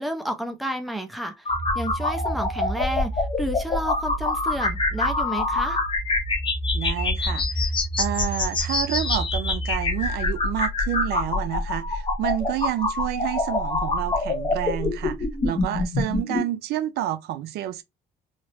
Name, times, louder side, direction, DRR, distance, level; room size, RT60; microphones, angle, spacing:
voice 1, 0.0-5.8, equal, ahead, 0.5 m, -31 dB
sound 1, 1.4-16.4, left 2 dB, 30° left, 1.0 m, -25 dB
voice 2, 6.7-7.7 8.0-15.2 15.4-17.8, right 13 dB, 75° right, 0.4 m, -29 dB
3.2 x 2.0 x 2.8 m
cardioid pair, 110°, 17 cm